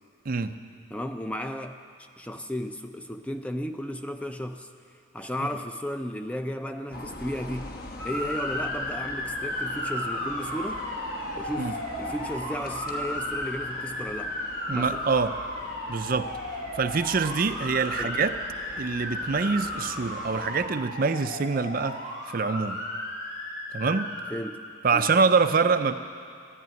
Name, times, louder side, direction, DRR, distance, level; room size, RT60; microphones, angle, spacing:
voice 1, 0.9-1.7 2.2-4.7 5.1-7.7 8.0-10.9 11.4-14.4 14.7-15.0 18.0-18.2 24.3-24.6 24.9-25.0, equal, 5° left, 6 dB, 0.5 m, -34 dB
sound 1, 6.9-20.7, left 2 dB, 45° left, 1.2 m, -43 dB
Motor vehicle (road) / Siren, 8.0-24.2, left 1 dB, 80° left, 4.4 m, -34 dB
voice 2, 14.7-15.4 15.9-16.3 16.7-18.4 18.8-22.0 22.3-22.8 23.7-24.1 24.8-25.9, right 4 dB, 45° right, 9 dB, 0.5 m, -25 dB
13.5 x 11.0 x 9.2 m, 2.3 s
head